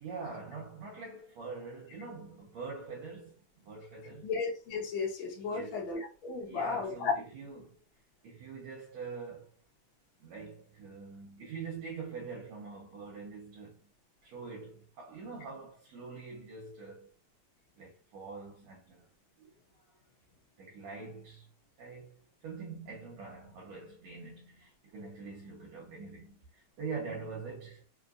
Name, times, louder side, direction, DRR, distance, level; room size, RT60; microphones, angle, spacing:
voice 1, 0.0-4.3 5.5-5.9 6.4-7.8 8.2-9.6 10.2-13.9 14.2-17.1 17.8-19.1 19.4-19.9 20.6-21.5 21.8-27.8, right 4 dB, 75° right, 1.6 m, -44 dB
voice 2, 4.2-7.1, left 5 dB, 80° left, 1.1 m, -34 dB
5.0 x 2.9 x 2.4 m
omnidirectional pair, 3.9 m